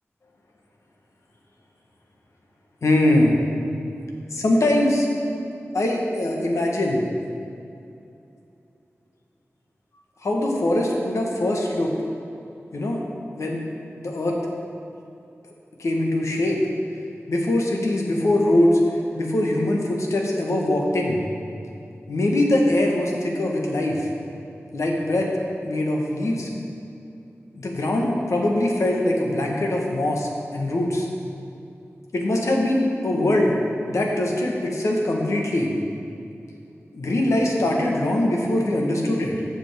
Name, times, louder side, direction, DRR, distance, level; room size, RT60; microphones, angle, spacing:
voice 1, 2.8-3.3 4.3-5.1 5.7-7.0 10.2-11.9 12.7-13.0 13.4-13.6 14.0-14.4 15.8-16.6 17.3-18.8 19.1-21.2 22.1-24.1 24.7-25.3 25.6-26.5 27.5-31.1 32.1-33.5 33.9-35.7 36.9-39.3, left 1 dB, 90° left, 0 dB, 1.3 m, -22 dB
15.0 x 5.1 x 3.5 m, 2.7 s
wide cardioid pair, 60°, 5 cm